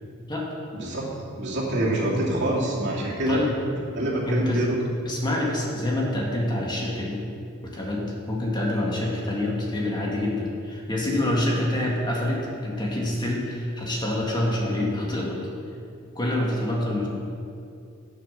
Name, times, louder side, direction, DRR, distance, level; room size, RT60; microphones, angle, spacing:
voice 1, 0.7-1.1 1.4-3.4 3.9-4.8, right 1 dB, 60° right, -5 dB, 2.6 m, -25 dB
voice 2, 4.3-4.7 5.1-7.2 7.6-15.4 16.2-17.1, left 1 dB, 20° left, -3 dB, 1.8 m, -26 dB
11.5 x 6.4 x 6.4 m, 2.4 s
head